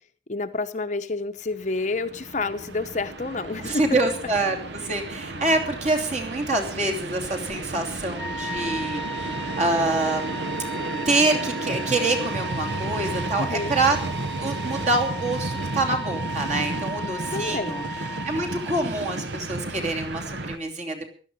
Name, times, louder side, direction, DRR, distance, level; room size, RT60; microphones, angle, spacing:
voice 1, 0.3-3.8 13.4-13.8 17.3-17.9, left 3 dB, 40° left, 9 dB, 0.8 m, -29 dB
Train, 1.6-20.6, right 2 dB, 70° right, 1.0 m, -33 dB
voice 2, 3.6-10.5 11.0-17.8 18.2-21.1, right 2 dB, 40° right, 3 dB, 3.0 m, -26 dB
Wind instrument woodwind instrument, 8.1-18.9, right 1 dB, 5° left, 1.4 m, -35 dB
16.0 x 12.0 x 5.4 m, 0.42 s
head